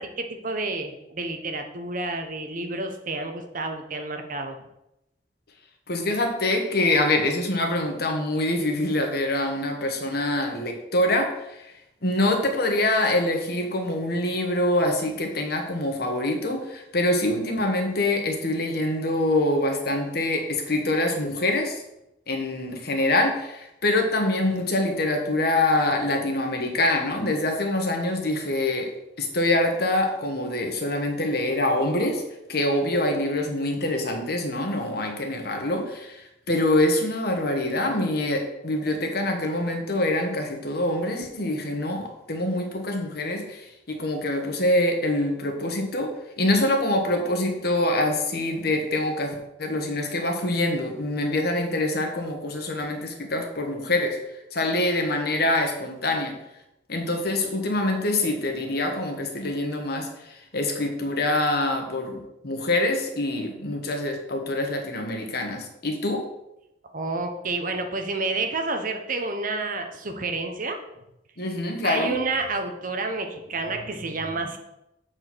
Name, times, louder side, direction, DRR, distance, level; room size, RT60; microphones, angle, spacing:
voice 1, 0.0-4.6 66.9-70.8 71.8-74.6, right 3 dB, 50° right, 5 dB, 1.0 m, -29 dB
voice 2, 5.9-11.3 12.0-21.8 22.3-28.9 29.2-32.2 32.5-36.2 36.5-43.6 43.9-46.1 46.4-49.3 49.6-54.2 54.5-56.3 56.9-60.1 60.5-66.2 71.4-72.2, left 1 dB, 60° left, 3 dB, 1.5 m, -25 dB
7.7 x 4.7 x 6.2 m, 0.87 s
head